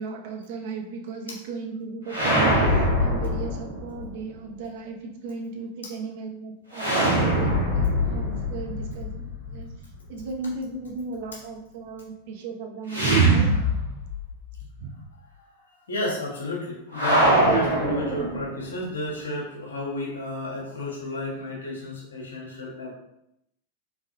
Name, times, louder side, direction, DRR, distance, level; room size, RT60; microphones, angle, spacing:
voice 1, 0.0-9.7 10.1-13.5 14.8-15.0, right 4 dB, 50° right, 2 dB, 0.7 m, -36 dB
sound 1, 2.1-4.1 6.7-9.7 12.9-14.3 14.6-14.7 16.9-18.7, right 1 dB, 80° right, 1.5 m, -23 dB
voice 2, 15.4-22.9, left 1 dB, 70° left, -3 dB, 1.2 m, -32 dB
3.7 x 3.3 x 2.6 m, 0.80 s
figure-of-eight pair, 90°, 0 cm